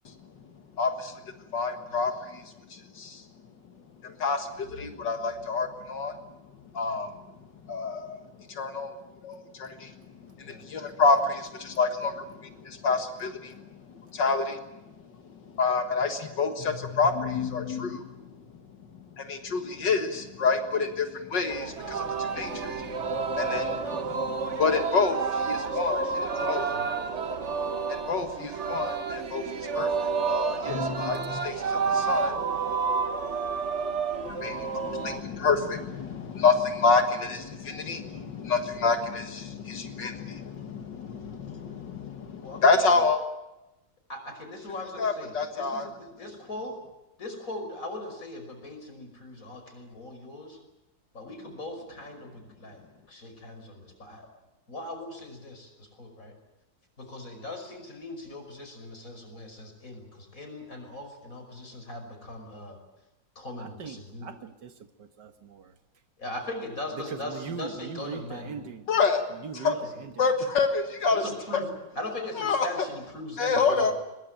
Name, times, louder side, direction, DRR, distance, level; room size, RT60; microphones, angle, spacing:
voice 1, 0.8-1.1 1.5-3.2 4.0-6.2 6.7-7.1 7.7-8.2 8.5-8.9 9.2-10.0 10.4-13.8 14.1-14.6 15.5-18.0 19.2-26.0 26.4-26.7 27.9-32.5 34.2-43.2 45.0-45.9 68.9-69.2 69.5-69.7 70.2-71.2 71.5-71.6 72.4-72.7 73.4-73.9, left 4 dB, 70° left, 2.3 m, -28 dB
Singing, 21.5-35.2, right 5 dB, 40° right, 1.5 m, -30 dB
voice 2, 23.3-23.6 25.5-27.1 42.4-43.1 44.1-46.8 47.2-50.6 51.1-54.3 54.7-56.3 57.0-62.8 63.4-64.3 66.2-68.6 69.7-69.9 71.1-71.7 72.0-73.9, left 2 dB, 45° left, 6.0 m, -40 dB
voice 3, 63.6-64.7 65.0-65.7 67.1-68.8 69.3-70.1, right 6 dB, 70° right, 2.0 m, -40 dB
22.5 x 21.0 x 9.1 m
omnidirectional pair, 2.0 m